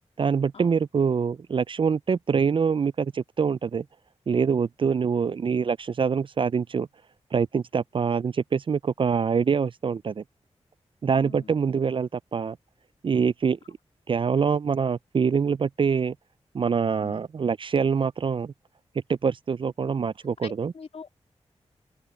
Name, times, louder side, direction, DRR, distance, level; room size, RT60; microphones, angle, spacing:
voice 1, 0.2-3.8 4.3-6.9 7.3-10.2 11.0-12.6 13.0-13.6 14.1-16.1 16.5-18.5 19.1-20.7, right 6 dB, 45° right, 0.4 m, -25 dB
voice 2, 11.1-11.6 17.0-17.2 19.8-19.9 20.4-21.1, left 5 dB, 60° left, 2.2 m, -44 dB
open air
cardioid pair, 55°, 12 cm